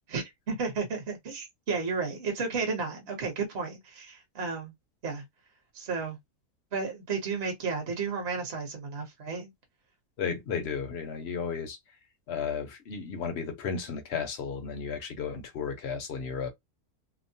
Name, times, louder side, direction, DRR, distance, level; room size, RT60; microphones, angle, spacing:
voice 1, 0.1-4.7 5.0-5.2 5.7-6.2 6.7-9.5, right 4 dB, 45° right, 1.1 m, -33 dB
voice 2, 10.2-11.8 12.3-16.5, left 6 dB, 60° left, 0.7 m, -34 dB
3.0 x 2.0 x 2.6 m
omnidirectional pair, 1.6 m